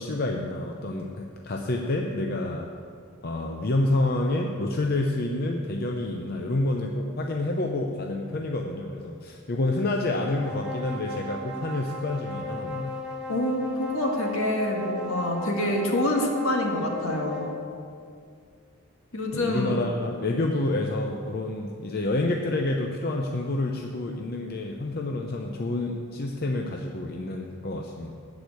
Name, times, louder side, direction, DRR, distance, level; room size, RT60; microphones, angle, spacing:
voice 1, 0.0-2.7 3.2-12.9 19.3-28.1, left 2 dB, 45° left, 2 dB, 0.6 m, -28 dB
sound 1, 10.2-17.6, left 2 dB, 5° right, 1.4 m, -36 dB
voice 2, 13.3-17.5 19.1-19.8, left 1 dB, 70° left, 1 dB, 1.7 m, -26 dB
12.5 x 5.0 x 8.4 m, 2.3 s
head